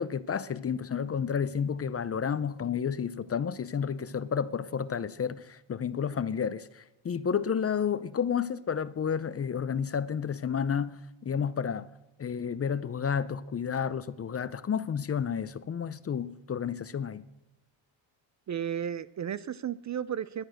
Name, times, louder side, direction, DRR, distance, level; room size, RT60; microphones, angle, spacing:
voice 1, 0.0-11.9 12.2-17.2, left 7 dB, 30° left, 0.6 m, -31 dB
voice 2, 18.5-20.4, right 9 dB, 35° right, 0.5 m, -33 dB
19.0 x 11.5 x 6.4 m
cardioid pair, 125°, 49 cm